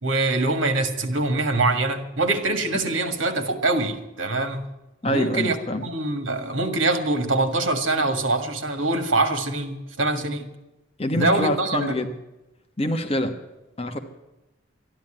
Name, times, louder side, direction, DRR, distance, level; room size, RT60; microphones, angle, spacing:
voice 1, 0.0-4.6 5.0-5.6 5.8-10.5 11.2-12.0, right 2 dB, 80° right, 1.8 m, -24 dB
voice 2, 5.0-5.8 11.0-12.1 12.8-13.3 13.8-14.0, left 1 dB, 30° left, 1.2 m, -25 dB
13.0 x 11.0 x 8.9 m
head